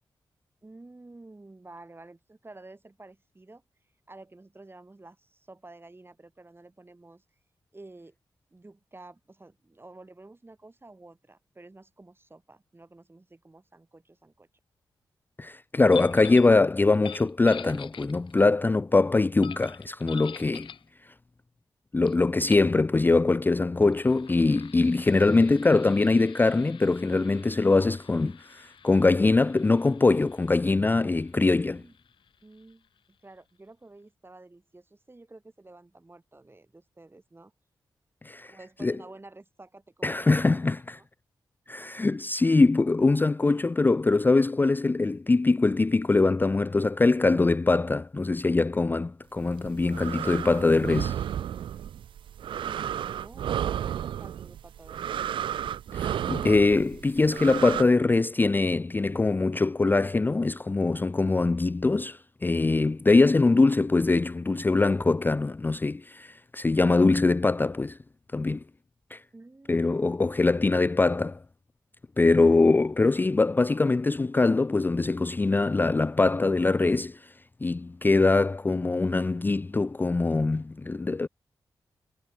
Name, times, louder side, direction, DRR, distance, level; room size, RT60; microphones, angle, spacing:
voice 1, 0.6-3.6 4.1-7.2 7.7-8.2 8.5-14.5 31.6-31.9 32.4-32.9 33.2-37.5 38.5-40.7 41.0-41.1 52.6-55.2 69.3-70.3, right 2 dB, 25° right, 3.9 m, -51 dB
voice 2, 15.4-20.7 21.9-31.8 38.2-38.5 38.8-39.0 40.0-41.0 41.7-51.2 55.9-68.0 68.3-68.6 69.1-69.2 69.7-71.4 72.2-77.3 77.6-81.3, left 3 dB, 25° left, 0.4 m, -23 dB
sound 1, 15.9-16.6 16.9-18.5 19.4-20.9 22.1-22.2 22.5-22.7 23.8-33.1, left 8 dB, 80° left, 2.8 m, -47 dB
sound 2, 49.5-57.8, right 10 dB, 85° right, 0.5 m, -32 dB
cardioid pair, 50°, 8 cm